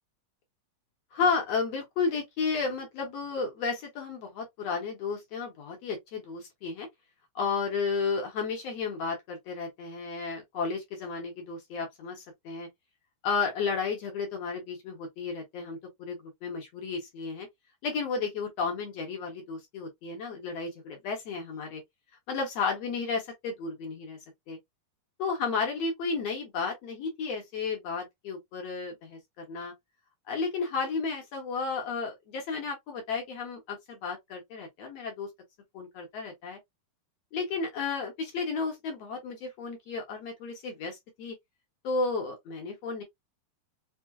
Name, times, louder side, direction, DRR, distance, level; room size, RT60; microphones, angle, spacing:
voice 1, 1.1-6.9 7.4-12.7 13.2-17.5 17.8-21.8 22.3-24.2 24.5-24.6 25.2-29.7 30.3-35.3 35.7-36.6 37.3-41.4 41.8-43.0, left 4 dB, 60° left, 1.8 m, -33 dB
6.0 x 2.1 x 2.2 m
omnidirectional pair, 4.2 m